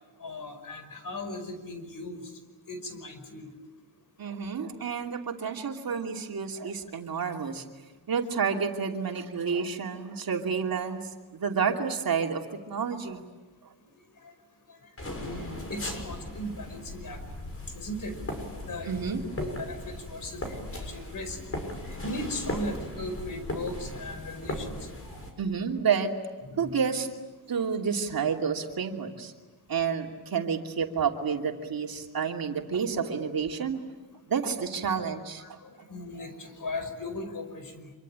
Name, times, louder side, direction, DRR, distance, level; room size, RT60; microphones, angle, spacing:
voice 1, 0.2-2.3 2.7-3.5 14.2-14.3 14.7-14.8 15.1-17.2 17.7-18.4 18.6-21.4 21.8-24.7 25.0-25.2 26.4-26.8 35.4-37.9, left 1 dB, 50° left, 9 dB, 5.4 m, -38 dB
voice 2, 4.2-7.6 8.1-11.0 11.3-12.4 12.7-13.2 18.9-19.2 25.4-26.1 26.6-27.1 27.5-29.3 29.7-33.8 34.3-35.9, right 6 dB, 60° right, 2 dB, 2.9 m, -30 dB
sound 1, 15.0-25.3, left 1 dB, 35° left, 6.7 m, -38 dB
26.5 x 24.5 x 8.9 m, 1.3 s
cardioid pair, 90°, 41 cm